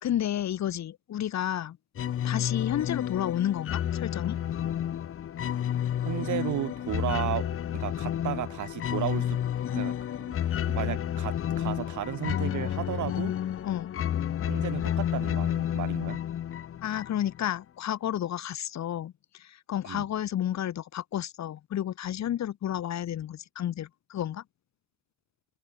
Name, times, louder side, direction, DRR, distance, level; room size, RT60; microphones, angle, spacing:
voice 1, 0.0-1.8 2.2-4.4 13.6-13.9 16.8-24.4, left 11 dB, 65° left, 1.8 m, -31 dB
sound 1, 1.9-17.4, left 10 dB, 45° left, 0.7 m, -30 dB
voice 2, 6.0-9.4 9.7-9.9 10.2-10.4 10.7-13.3 14.5-16.2 19.9-20.1, right 13 dB, 75° right, 1.7 m, -34 dB
cardioid pair, 90°, 30 cm